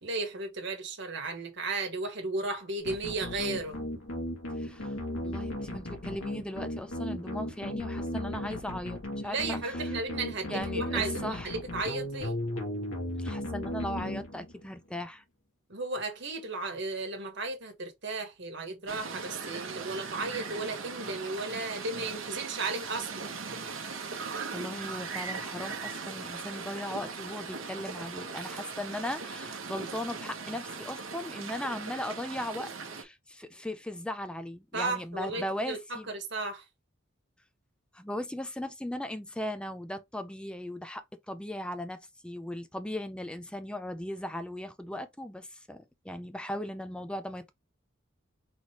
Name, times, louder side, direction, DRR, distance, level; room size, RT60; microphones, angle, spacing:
voice 1, 0.0-3.8 9.2-12.4 15.7-23.3 34.7-36.6, right 3 dB, 60° right, 1.4 m, -34 dB
sound 1, 2.8-14.7, left 1 dB, 90° left, 1.7 m, -36 dB
voice 2, 4.6-9.9 10.5-11.5 13.2-15.2 24.1-32.7 33.0-36.1 37.9-42.0 42.2-47.5, left 1 dB, 5° left, 0.4 m, -38 dB
sound 2, 18.9-33.0, right 5 dB, 75° right, 0.9 m, -39 dB
4.1 x 3.1 x 3.0 m
head